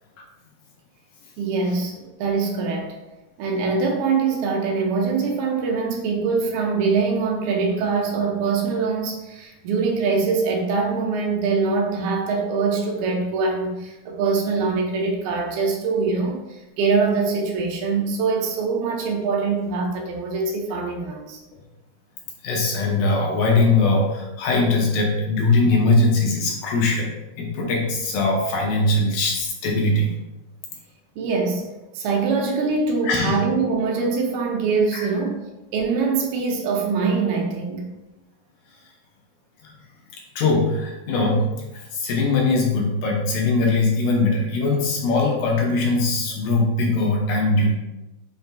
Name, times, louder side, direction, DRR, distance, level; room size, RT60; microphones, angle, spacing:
voice 1, 1.4-3.0 3.4-21.4 31.2-31.6 31.9-37.9, right 4 dB, 75° right, 1 dB, 2.5 m, -23 dB
voice 2, 22.4-27.1 27.4-30.1 33.0-33.4 34.9-35.1 39.6-39.7 40.4-47.7, left 2 dB, 70° left, -1 dB, 2.2 m, -21 dB
8.1 x 5.3 x 2.3 m, 1.0 s
omnidirectional pair, 4.7 m